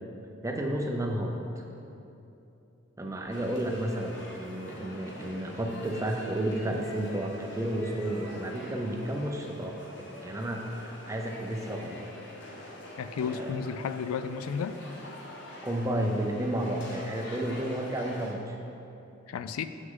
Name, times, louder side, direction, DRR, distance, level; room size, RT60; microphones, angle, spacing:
voice 1, 0.4-1.6 3.0-12.1 13.2-13.6 15.6-18.6, right 1 dB, 15° right, 1 dB, 0.5 m, -32 dB
sound 1, 3.3-18.3, left 1 dB, 55° left, 0.9 m, -45 dB
voice 2, 13.0-14.8 19.3-19.7, left 6 dB, 85° left, 11 dB, 0.3 m, -33 dB
7.4 x 6.3 x 3.8 m, 2.8 s
head